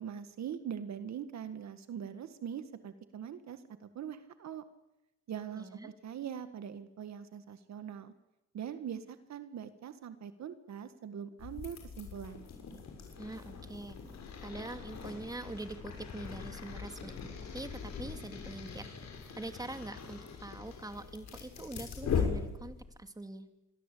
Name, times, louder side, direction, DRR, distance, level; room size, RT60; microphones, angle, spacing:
voice 1, 0.0-4.6 5.3-8.1 8.5-12.4, right 8 dB, 65° right, 11 dB, 1.8 m, -42 dB
voice 2, 5.5-5.9 13.2-14.0 14.4-17.2 17.5-18.9 19.4-23.5, right 2 dB, 10° right, 8 dB, 2.6 m, -44 dB
sound 1, 11.4-23.0, left 6 dB, 60° left, 6.9 m, -40 dB
26.5 x 22.0 x 8.6 m, 0.94 s
cardioid pair, 90°, 30 cm